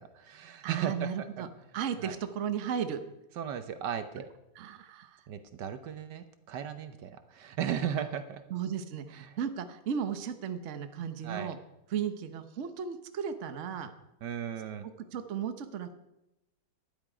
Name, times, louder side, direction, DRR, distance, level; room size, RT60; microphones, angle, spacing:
voice 1, 0.0-1.3 2.0-2.1 3.4-4.3 5.3-8.4 9.3-9.4 11.2-11.5 14.2-14.9, right 9 dB, 75° right, 10 dB, 1.4 m, -36 dB
voice 2, 0.6-1.5 1.7-3.0 4.5-5.2 8.5-11.6 11.9-13.9 15.1-15.9, right 7 dB, 50° right, 8 dB, 1.1 m, -35 dB
12.0 x 10.5 x 5.0 m, 0.90 s
omnidirectional pair, 1.9 m